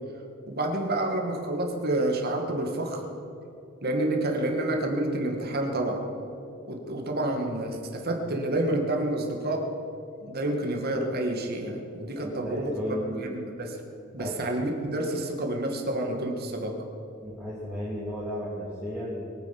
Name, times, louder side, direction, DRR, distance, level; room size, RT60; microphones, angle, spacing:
voice 1, 0.5-3.0 3.8-6.0 6.7-9.7 10.2-12.7 13.2-13.8 14.1-16.8, right 1 dB, 50° right, 2 dB, 2.2 m, -29 dB
voice 2, 12.1-13.4 14.2-14.4 17.2-19.3, equal, 5° right, -8 dB, 2.7 m, -34 dB
22.5 x 9.6 x 6.1 m, 2.8 s
head